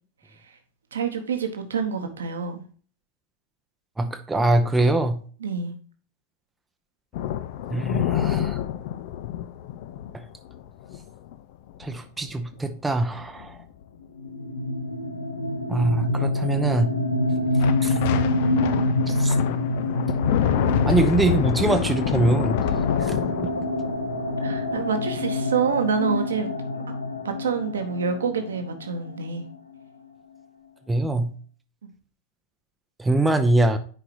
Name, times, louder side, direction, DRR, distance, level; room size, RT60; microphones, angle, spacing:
voice 1, 0.9-2.6 5.4-5.7 24.4-26.5 27.2-29.4 31.8-31.9, right 6 dB, 65° right, 1.0 m, -27 dB
voice 2, 4.0-5.2 7.7-8.6 10.1-10.3 11.8-13.6 15.7-17.0 17.8-17.9 19.1-19.3 20.9-22.6 23.0-23.2 30.9-31.3 33.0-33.8, right 2 dB, 10° right, 0.6 m, -23 dB
sound 1, 7.1-11.4 11.7-11.9 12.3-12.5 13.2-13.6 17.6-25.6, left 11 dB, 50° left, 0.5 m, -28 dB
sound 2, 14.2-29.8, left 2 dB, 80° left, 1.0 m, -27 dB
10.0 x 4.8 x 2.9 m
figure-of-eight pair, 90°, 0 cm